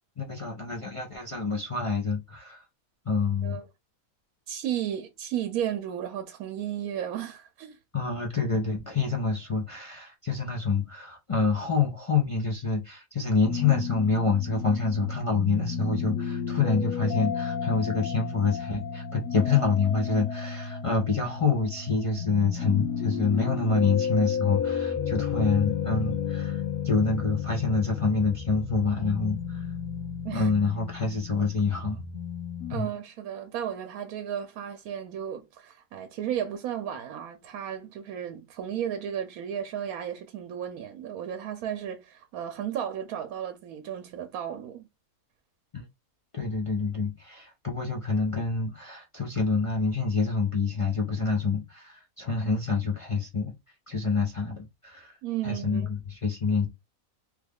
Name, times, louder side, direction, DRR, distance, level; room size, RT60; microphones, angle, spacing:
voice 1, 0.2-2.6 3.1-3.6 7.9-29.7 30.3-32.0 32.7-32.9 45.7-45.8 46.3-53.5 53.9-55.1 55.4-56.7, left 4 dB, 45° left, 0.4 m, -27 dB
voice 2, 4.5-7.8 30.2-30.5 32.7-44.9 55.2-55.9, right 10 dB, 85° right, 1.0 m, -34 dB
sound 1, 13.4-32.8, left 7 dB, 85° left, 1.2 m, -32 dB
3.2 x 2.3 x 3.4 m
omnidirectional pair, 1.5 m